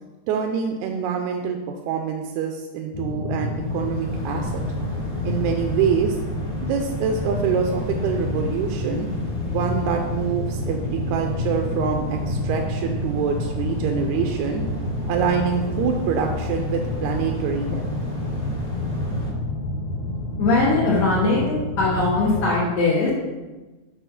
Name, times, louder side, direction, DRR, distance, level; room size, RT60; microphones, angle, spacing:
voice 1, 0.3-1.6 1.9-4.6 5.2-6.2 6.6-9.1 9.5-14.6 15.1-17.8, right 6 dB, 80° right, 3 dB, 2.0 m, -25 dB
sound 1, 2.9-22.4, left 2 dB, 85° left, 1.1 m, -29 dB
sound 2, 3.4-19.3, right 2 dB, 20° left, 1.1 m, -35 dB
voice 2, 20.4-23.1, left 3 dB, 65° left, -6 dB, 2.2 m, -20 dB
7.0 x 4.2 x 5.9 m, 1.2 s
omnidirectional pair, 3.4 m